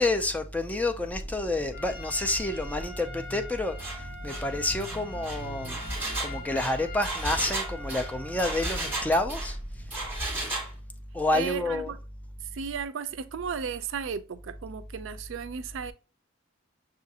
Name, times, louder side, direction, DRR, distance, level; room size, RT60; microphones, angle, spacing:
voice 1, 0.0-5.8 6.2-9.6 11.1-11.9, left 2 dB, 10° left, 0.3 m, -29 dB
sound 1, 1.1-10.2, right 1 dB, 35° left, 1.3 m, -42 dB
Trumpet, 1.7-9.0, left 2 dB, 70° left, 2.3 m, -44 dB
Engine, 3.8-4.0 4.3-4.5 4.8-9.5 9.9-10.7, right 2 dB, 10° right, 1.3 m, -34 dB
voice 2, 11.3-12.0 12.4-15.9, right 6 dB, 75° right, 0.4 m, -35 dB
6.1 x 2.4 x 2.7 m
head